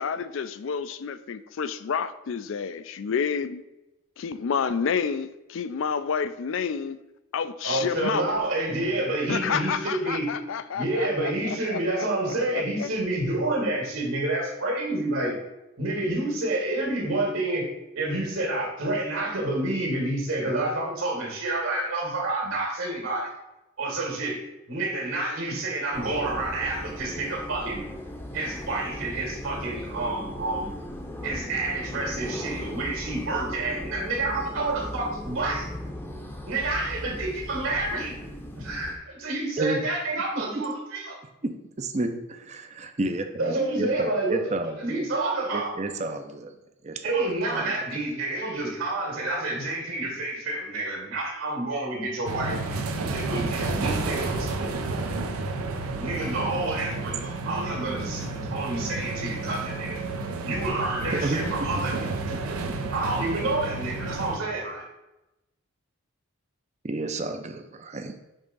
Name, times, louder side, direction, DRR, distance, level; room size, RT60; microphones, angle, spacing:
voice 1, 0.0-3.6 4.2-7.0 7.3-8.3 9.3-11.3 11.7-12.1 12.5-12.9, left 6 dB, 65° left, 13 dB, 0.4 m, -29 dB
voice 2, 7.6-10.3 10.7-15.3 15.8-17.7 18.0-23.3 23.8-24.4 24.7-27.9 28.3-30.7 31.2-35.7 36.5-38.2 38.6-41.2 43.4-44.4 44.8-45.7 47.0-54.9 55.9-60.0 60.4-62.1 62.9-64.9, right 2 dB, 70° right, -2 dB, 2.0 m, -29 dB
sound 1, 25.9-39.0, left 1 dB, 10° left, 0.7 m, -37 dB
voice 3, 41.4-45.0 45.5-46.5 46.8-47.0 47.5-47.8 61.0-61.4 62.7-62.8 66.8-68.2, right 2 dB, 30° right, 7 dB, 0.5 m, -31 dB
sound 2, 52.3-64.4, right 3 dB, 85° right, 0.7 m, -31 dB
5.4 x 3.6 x 5.3 m, 0.95 s
head